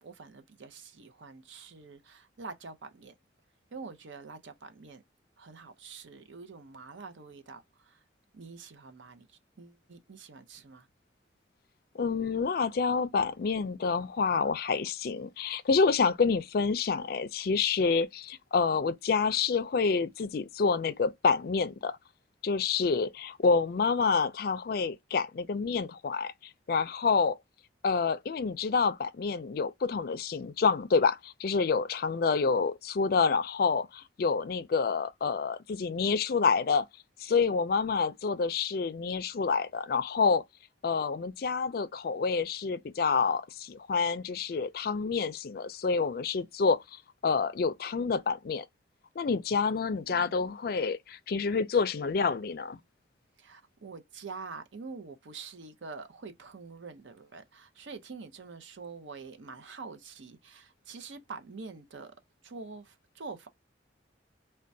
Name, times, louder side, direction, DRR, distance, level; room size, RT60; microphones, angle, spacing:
voice 1, 0.0-3.1 3.7-5.0 5.4-8.0 8.3-9.3 9.6-10.9 50.1-50.5 53.4-62.1 62.4-63.5, right 4 dB, 75° right, 0.6 m, -46 dB
voice 2, 11.9-22.0 22.4-27.4 27.8-36.8 37.2-40.4 40.8-46.8 47.2-48.7 49.2-52.8, left 5 dB, 50° left, 0.4 m, -28 dB
4.3 x 2.2 x 2.6 m
head